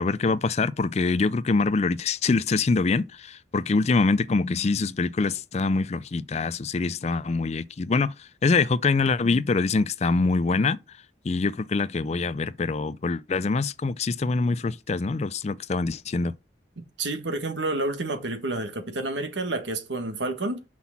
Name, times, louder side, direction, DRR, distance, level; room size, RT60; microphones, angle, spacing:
voice 1, 0.0-8.1 8.4-10.8 11.2-16.3, left 4 dB, 35° left, 0.4 m, -24 dB
voice 2, 16.8-20.6, right 2 dB, 70° right, 1.6 m, -29 dB
6.2 x 5.7 x 7.2 m
head